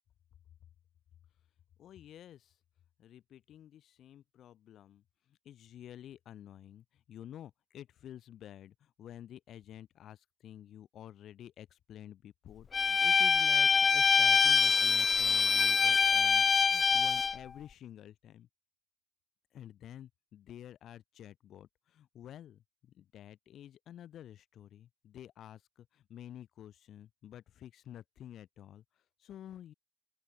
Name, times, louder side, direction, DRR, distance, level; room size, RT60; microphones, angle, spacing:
voice 1, 1.8-2.6 3.0-18.5 19.5-29.7, left 11 dB, 70° left, 3.7 m, -50 dB
Bowed string instrument, 12.7-17.4, left 5 dB, 40° left, 0.5 m, -25 dB
open air
cardioid pair, 90°, 0 cm